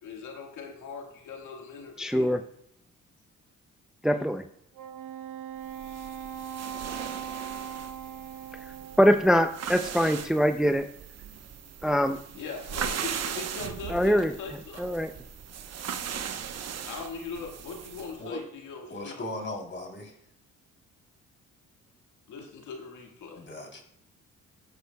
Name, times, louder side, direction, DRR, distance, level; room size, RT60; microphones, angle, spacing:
voice 1, 0.0-2.3 12.3-14.9 16.8-19.2 22.3-23.4, left 4 dB, 85° left, 1 dB, 1.8 m, -40 dB
voice 2, 2.0-2.4 4.0-4.4 9.0-10.9 11.8-12.2 13.9-14.3 14.8-15.1, equal, ahead, 8 dB, 0.5 m, -23 dB
Wind instrument woodwind instrument, 4.7-9.3, right 8 dB, 80° right, 0.9 m, -40 dB
sound 1, 5.7-18.2, right 8 dB, 55° right, 1.0 m, -38 dB
voice 3, 18.9-20.2 23.4-23.8, left 1 dB, 40° left, 1 dB, 3.4 m, -37 dB
18.0 x 7.8 x 2.3 m, 0.72 s
cardioid pair, 90°, 30 cm